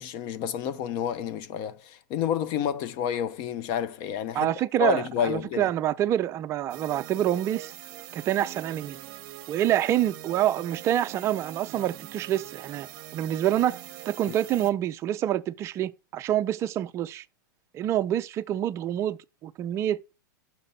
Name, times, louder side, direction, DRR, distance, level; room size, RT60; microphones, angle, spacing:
voice 1, 0.0-4.5 4.8-5.7 14.3-14.4, left 8 dB, 40° left, 0.6 m, -29 dB
voice 2, 4.3-7.7 8.1-9.0 9.5-13.8 14.1-17.2 17.7-20.2, right 12 dB, 25° right, 0.4 m, -27 dB
sound 1, 6.7-14.7, right 15 dB, 45° right, 0.8 m, -43 dB
5.9 x 4.0 x 5.5 m
hypercardioid pair, 130°, 11 cm